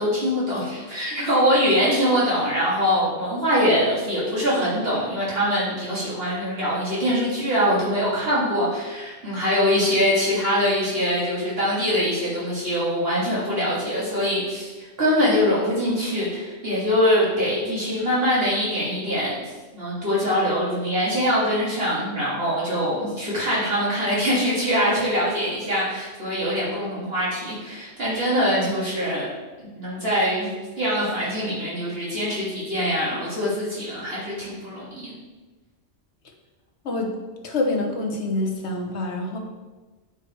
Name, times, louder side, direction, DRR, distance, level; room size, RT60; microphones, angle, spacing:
voice 1, 0.0-19.4 19.7-29.3 29.6-30.5 30.8-35.2, equal, 60° right, -8 dB, 3.0 m, -23 dB
voice 2, 37.4-39.4, left 2 dB, 80° left, 1 dB, 1.4 m, -26 dB
8.4 x 4.8 x 4.6 m, 1.3 s
omnidirectional pair, 1.1 m